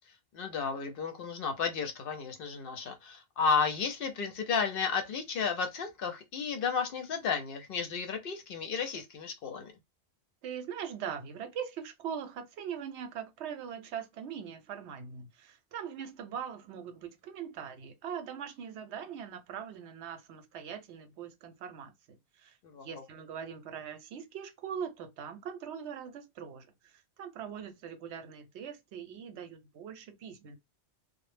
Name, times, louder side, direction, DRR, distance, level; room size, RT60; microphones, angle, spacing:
voice 1, 0.3-9.7 22.6-23.0, left 5 dB, 65° left, 0.7 m, -33 dB
voice 2, 10.4-22.6 22.8-30.6, right 8 dB, 80° right, 0.9 m, -41 dB
2.0 x 2.0 x 3.1 m
omnidirectional pair, 1.1 m